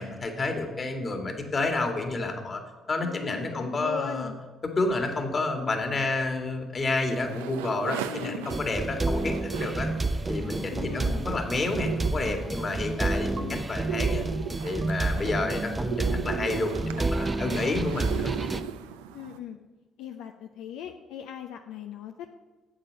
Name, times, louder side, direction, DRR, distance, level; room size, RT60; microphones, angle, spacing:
voice 1, 0.0-2.6 2.9-4.3 4.8-9.9 10.3-14.3 14.6-18.3, left 3 dB, 40° left, 4 dB, 2.0 m, -30 dB
voice 2, 3.0-4.4 8.1-8.6 10.7-11.3 13.4-13.7 19.1-19.6 20.0-22.3, left 9 dB, 80° left, 5 dB, 0.5 m, -39 dB
sound 1, 7.1-19.4, right 10 dB, 90° right, 0.5 m, -38 dB
sound 2, 8.5-18.6, right 2 dB, 25° right, 0.6 m, -30 dB
sound 3, 12.6-13.1 13.4-16.8 17.1-17.4 18.0-18.7, right 2 dB, 50° right, 1.3 m, -43 dB
8.7 x 7.6 x 6.5 m, 1.3 s
hypercardioid pair, 50°, 0 cm